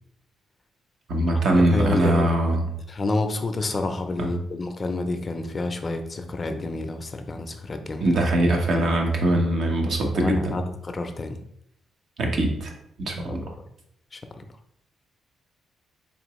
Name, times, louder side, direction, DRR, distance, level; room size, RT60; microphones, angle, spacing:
voice 1, 1.1-2.6 4.2-4.3 8.0-10.5 12.2-12.7 13.0-13.4, right 1 dB, 65° right, 1 dB, 0.9 m, -22 dB
voice 2, 1.7-2.6 2.9-8.1 10.1-11.4 13.4-13.5 14.1-14.4, left 2 dB, 35° left, 7 dB, 0.5 m, -29 dB
4.2 x 2.9 x 3.0 m, 0.73 s
cardioid pair, 90°, 0 cm